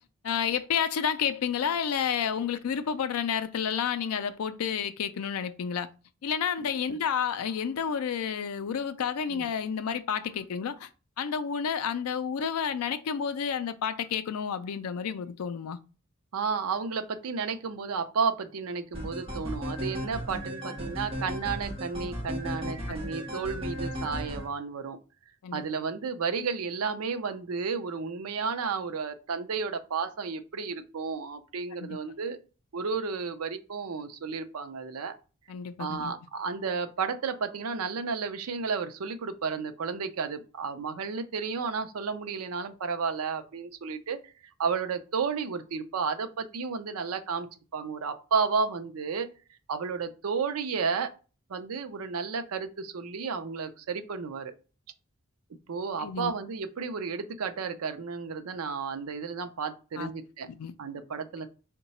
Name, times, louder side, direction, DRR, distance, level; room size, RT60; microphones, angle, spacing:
voice 1, 0.2-5.9 6.2-10.9 11.2-15.8 25.4-25.6 31.8-32.0 35.5-36.1 56.0-56.3 60.0-60.1 60.6-60.7, left 7 dB, 80° left, 0.4 m, -30 dB
voice 2, 16.3-25.0 25.5-32.4 32.7-35.1 35.8-44.3 44.6-47.5 47.7-49.3 49.7-51.1 51.5-54.5 55.7-60.5 60.8-61.5, right 5 dB, 80° right, 0.5 m, -32 dB
sound 1, 18.9-24.5, equal, 25° right, 0.9 m, -35 dB
3.8 x 2.2 x 4.1 m
head